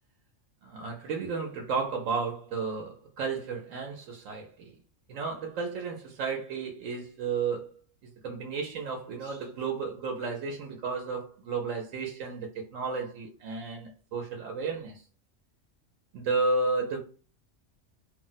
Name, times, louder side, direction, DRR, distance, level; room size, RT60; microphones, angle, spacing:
voice 1, 0.6-4.7 5.1-7.7 8.2-15.0 16.1-17.0, right 4 dB, 85° right, 0.9 m, -32 dB
2.4 x 2.0 x 3.8 m
omnidirectional pair, 1.3 m